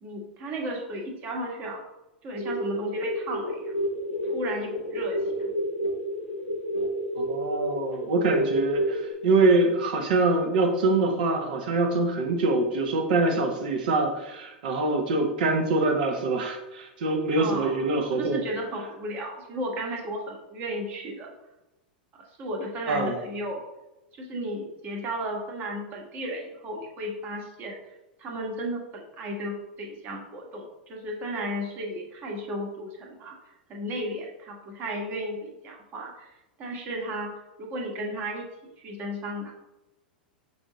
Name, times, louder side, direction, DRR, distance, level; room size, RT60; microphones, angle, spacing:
voice 1, 0.0-1.8 2.2-3.7 4.3-5.2 17.4-17.8 18.1-21.3 22.4-23.6 24.1-27.8 28.2-33.3 33.7-36.3 36.6-37.3 37.6-39.5, equal, 35° right, 0 dB, 1.2 m, -34 dB
sound 1, 2.4-9.1, equal, 85° left, 0.8 m, -30 dB
voice 2, 7.2-18.4 22.9-23.2, right 3 dB, 65° right, 3 dB, 0.8 m, -24 dB
6.0 x 2.7 x 3.0 m, 0.98 s
hypercardioid pair, 95°, 5 cm